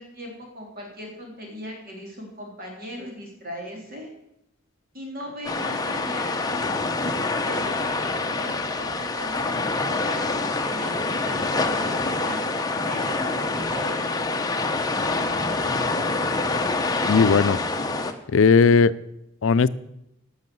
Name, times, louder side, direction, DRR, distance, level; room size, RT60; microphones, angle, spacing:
voice 1, 0.0-4.1 4.9-6.4 7.4-12.4 12.8-14.2, equal, 45° right, 0 dB, 3.5 m, -38 dB
sound 1, 5.4-18.1, left 3 dB, 20° left, 0.8 m, -26 dB
voice 2, 17.1-17.6 18.3-18.9 19.4-19.7, left 5 dB, 70° left, 16 dB, 0.5 m, -17 dB
12.0 x 6.4 x 7.7 m, 0.84 s
head